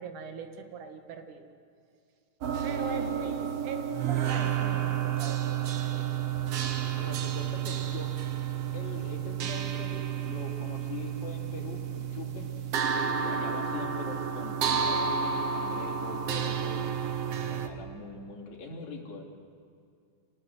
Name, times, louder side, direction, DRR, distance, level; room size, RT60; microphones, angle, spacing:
voice 1, 0.0-1.5 2.6-6.1, right 5 dB, 80° right, 7 dB, 3.2 m, -41 dB
sound 1, 2.4-17.7, right 8 dB, 60° right, 2.0 m, -31 dB
voice 2, 2.8-3.3 7.0-8.2 8.7-16.9 17.3-19.2, left 4 dB, 65° left, -1 dB, 4.3 m, -43 dB
25.5 x 19.0 x 8.0 m, 2.4 s
omnidirectional pair, 3.5 m